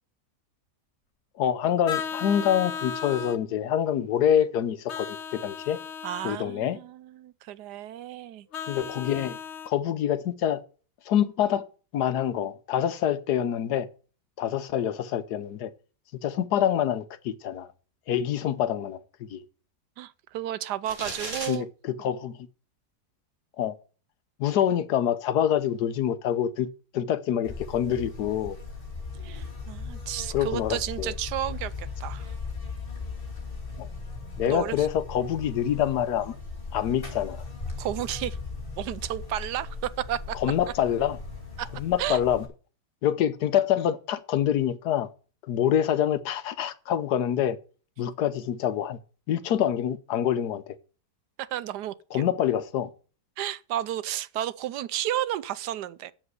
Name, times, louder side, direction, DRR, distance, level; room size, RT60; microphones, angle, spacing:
voice 1, 1.4-5.8 6.2-6.8 8.7-9.4 9.7-10.6 11.1-11.6 11.9-13.9 14.4-15.7 16.2-17.7 18.1-19.0 19.3-19.4 21.5-22.4 23.6-23.7 24.4-26.7 26.9-28.6 30.3-31.1 33.8-33.9 34.4-36.3 36.7-37.4 40.4-41.2 41.8-42.4 43.0-45.1 45.5-47.6 48.0-49.0 49.3-50.8 52.1-52.9, left 10 dB, 80° left, 1.4 m, -26 dB
Vehicle horn car horn honking, 1.8-3.4 4.9-6.4 8.5-9.7, left 7 dB, 55° left, 0.8 m, -35 dB
voice 2, 6.0-8.5 20.0-21.7 29.2-32.3 34.4-34.9 37.8-38.4 38.8-40.4 41.6-41.7 42.0-42.2 51.4-52.2 53.4-56.1, right 12 dB, 85° right, 1.3 m, -32 dB
sound 1, 20.9-21.5, right 2 dB, 50° right, 2.8 m, -34 dB
Buzz, 27.4-42.5, left 4 dB, 35° left, 3.0 m, -38 dB
7.8 x 7.4 x 8.0 m
omnidirectional pair, 1.7 m